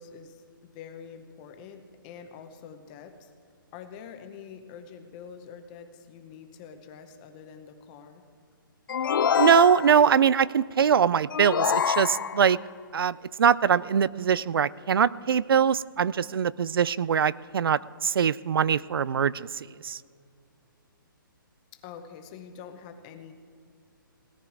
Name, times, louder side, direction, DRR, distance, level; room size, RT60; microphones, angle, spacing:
voice 1, 0.0-3.3 3.7-8.2 21.7-23.3, left 7 dB, 20° left, 7 dB, 0.8 m, -46 dB
sound 1, 8.9-10.2 11.3-12.6, left 8 dB, 70° left, 0.4 m, -26 dB
voice 2, 9.4-12.6 12.9-19.5 19.8-20.0, right 7 dB, 90° right, 21 dB, 0.4 m, -22 dB
17.5 x 9.8 x 4.7 m, 2.3 s
hypercardioid pair, 165°, 12 cm